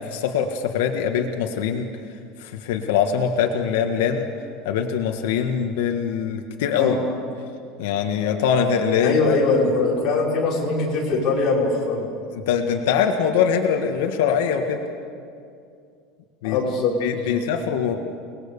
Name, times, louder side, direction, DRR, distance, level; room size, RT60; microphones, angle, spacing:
voice 1, 0.1-1.9 2.4-4.3 4.6-7.0 7.8-9.2 12.3-14.8 16.4-16.6 17.0-17.9, left 7 dB, 85° left, 4 dB, 1.6 m, -22 dB
voice 2, 9.0-12.1 16.4-17.4, left 3 dB, 30° left, -4 dB, 5.4 m, -22 dB
29.5 x 20.0 x 6.9 m, 2.4 s
cardioid pair, 180°, 0 cm